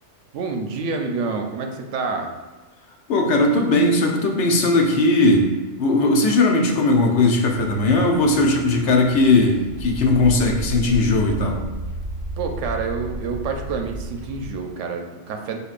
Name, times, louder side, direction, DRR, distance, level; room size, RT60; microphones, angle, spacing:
voice 1, 0.3-2.3 12.4-15.6, right 4 dB, 80° right, 4 dB, 0.9 m, -28 dB
voice 2, 3.1-5.5 5.8-11.6, left 2 dB, 70° left, 2 dB, 0.9 m, -18 dB
sound 1, 7.4-14.5, right 1 dB, 40° right, 0.3 m, -33 dB
5.2 x 4.2 x 2.4 m, 1.2 s
omnidirectional pair, 1.3 m